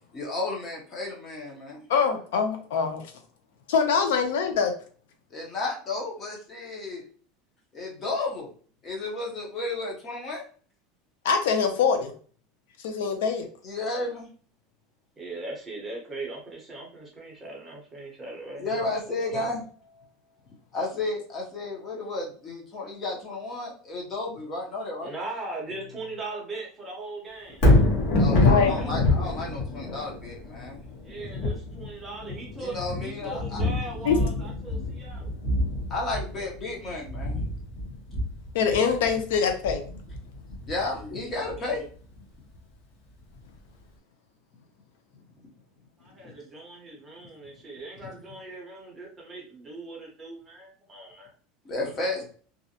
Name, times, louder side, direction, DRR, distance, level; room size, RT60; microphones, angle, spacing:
voice 1, 0.1-1.8 5.3-7.1 7.7-8.5 8.8-10.4 13.6-14.3 18.6-19.6 20.0-20.1 20.7-25.1 27.6-27.7 28.2-30.8 32.6-33.6 35.9-37.4 40.6-41.8 46.2-46.3 48.0-48.2 51.6-52.3, left 2 dB, 25° left, -2 dB, 0.7 m, -33 dB
voice 2, 1.9-3.1 3.7-4.7 11.2-12.1 12.8-13.5 28.3-28.7 34.0-34.2 38.5-39.9, left 6 dB, 90° left, 6 dB, 0.6 m, -24 dB
voice 3, 15.2-18.8 19.3-19.4 25.0-27.6 31.0-35.3 46.0-51.3, right 2 dB, 15° right, -2 dB, 0.7 m, -39 dB
Thunder, 27.5-41.7 42.2-42.3, left 2 dB, 50° left, 0.9 m, -26 dB
2.4 x 2.0 x 2.7 m, 0.42 s
supercardioid pair, 165°, 0 cm